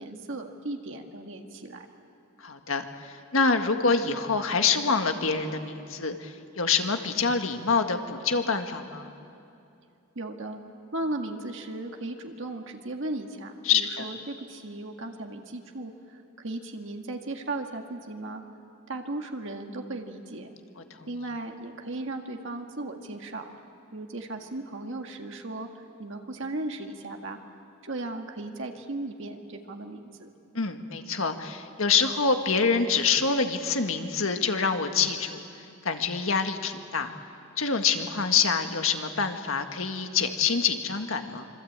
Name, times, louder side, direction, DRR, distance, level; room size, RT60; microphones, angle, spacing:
voice 1, 0.0-1.9 10.2-10.6 10.9-18.4 18.9-20.5 21.1-23.5 23.9-27.4 27.8-30.3, right 2 dB, 65° right, 3 dB, 1.8 m, -36 dB
voice 2, 2.4-9.1 13.7-14.0 30.6-35.4 35.9-37.1 37.6-41.5, left 5 dB, 70° left, 6 dB, 1.7 m, -26 dB
26.0 x 25.0 x 8.8 m, 2.6 s
head